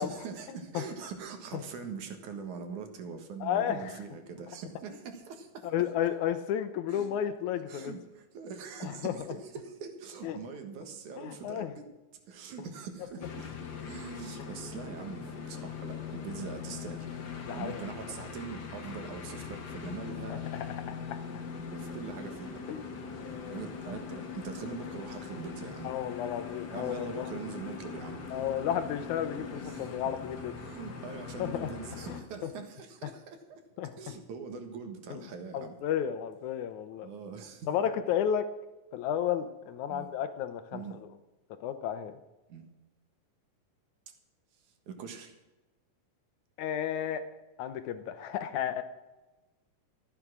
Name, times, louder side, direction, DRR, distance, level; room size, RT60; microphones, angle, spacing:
voice 1, 0.0-5.7 6.9-7.1 7.7-11.9 12.3-17.1 17.5-20.5 21.7-22.6 23.2-25.9 26.7-28.4 29.5-30.0 30.6-33.6 34.0-35.8 37.0-37.7 39.9-40.1 40.7-41.0 42.5-42.7 44.9-45.3, right 5 dB, 65° right, 6 dB, 2.8 m, -43 dB
voice 2, 3.4-4.0 5.6-8.0 8.8-9.1 10.2-10.4 11.2-11.7 14.4-14.5 17.4-17.9 20.3-21.2 22.7-22.8 23.1-23.6 23.9-24.0 25.8-27.3 28.3-30.5 31.4-31.7 32.1-32.5 33.0-33.1 33.8-34.1 35.1-35.2 35.5-37.1 37.7-38.5 38.9-41.0 41.6-42.2 46.6-47.2 47.6-48.8, left 9 dB, 75° left, 10 dB, 1.9 m, -33 dB
sound 1, 13.2-32.2, left 6 dB, 50° left, 1.3 m, -41 dB
13.5 x 9.9 x 6.0 m, 1.1 s
omnidirectional pair, 4.0 m